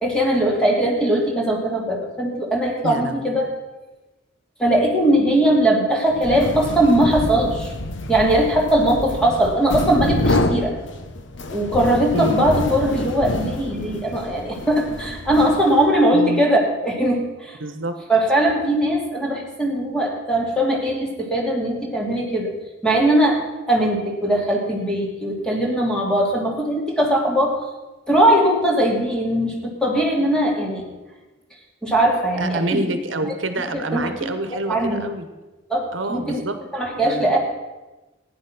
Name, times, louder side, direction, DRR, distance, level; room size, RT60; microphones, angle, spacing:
voice 1, 0.0-3.5 4.6-7.7 8.1-10.8 11.5-17.6 18.1-22.5 22.8-23.4 23.7-27.6 28.1-30.8 31.8-32.8 33.7-35.0 35.7-36.4 36.7-37.4, right 1 dB, 5° left, -1 dB, 2.5 m, -20 dB
voice 2, 2.8-3.4 12.1-12.4 16.1-16.4 17.6-18.0 32.4-35.3 35.9-36.6 37.0-37.3, right 2 dB, 75° right, 9 dB, 1.1 m, -27 dB
sound 1, 6.1-16.1, left 2 dB, 70° left, 1.1 m, -27 dB
15.0 x 9.8 x 6.0 m, 1.1 s
head